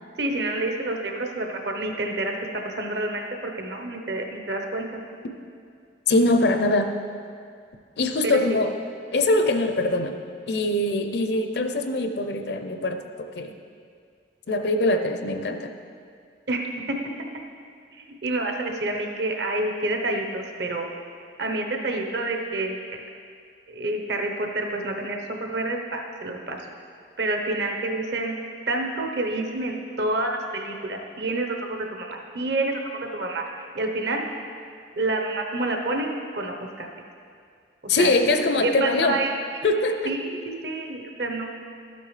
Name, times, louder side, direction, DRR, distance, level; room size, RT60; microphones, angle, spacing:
voice 1, 0.2-5.0 8.2-8.6 16.5-17.0 18.0-20.9 21.4-23.0 23.7-26.6 27.2-28.4 28.7-32.8 33.1-33.4 33.7-34.2 35.0-36.9 38.0-38.1 38.6-39.6 40.0-40.4 40.6-41.5, right 2 dB, 60° right, 2 dB, 0.9 m, -28 dB
voice 2, 6.1-6.9 8.0-8.7 9.1-10.2 10.5-13.5 14.5-15.7 37.9-39.2 39.6-40.1, left 2 dB, 60° left, 6 dB, 0.6 m, -23 dB
12.5 x 8.3 x 3.3 m, 2.2 s
head